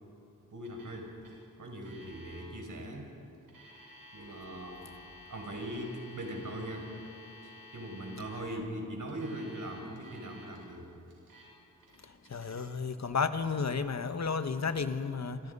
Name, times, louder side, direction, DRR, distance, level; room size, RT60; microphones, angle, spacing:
voice 1, 0.5-1.1 1.6-3.1 4.1-4.9 5.3-6.9 7.4-10.9, right 1 dB, 65° right, 2 dB, 4.9 m, -40 dB
Alarm, 0.6-1.0 1.2-1.3 1.8-2.4 3.3-8.4 9.1-10.6 11.1-11.5 11.8-12.6, left 2 dB, 90° right, 7.8 m, -53 dB
voice 2, 12.3-15.4, left 5 dB, 50° left, 9 dB, 1.3 m, -32 dB
28.5 x 26.5 x 5.5 m, 2.8 s
wide cardioid pair, 95°, 34 cm